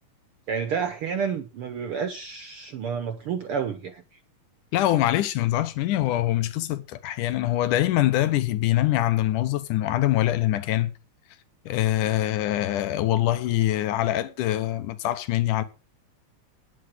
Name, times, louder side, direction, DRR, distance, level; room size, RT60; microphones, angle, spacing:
voice 1, 0.5-4.0, right 6 dB, 65° right, 1.4 m, -30 dB
voice 2, 4.7-10.9 11.7-15.6, left 14 dB, 85° left, 2.6 m, -24 dB
9.6 x 9.1 x 6.5 m
omnidirectional pair, 3.6 m